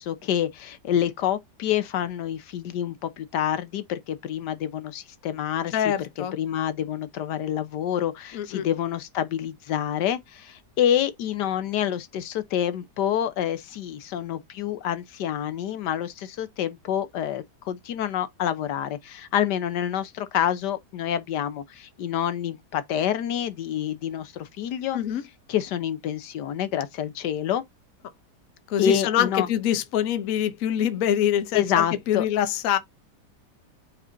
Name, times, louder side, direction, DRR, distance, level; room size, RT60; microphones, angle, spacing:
voice 1, 0.0-25.0 25.5-27.6 28.8-29.5 31.5-32.2, left 10 dB, 75° left, 1.4 m, -27 dB
voice 2, 5.7-6.3 8.3-8.7 24.9-25.2 28.7-32.8, left 10 dB, 60° left, 1.0 m, -25 dB
8.2 x 4.4 x 2.6 m
omnidirectional pair, 1.9 m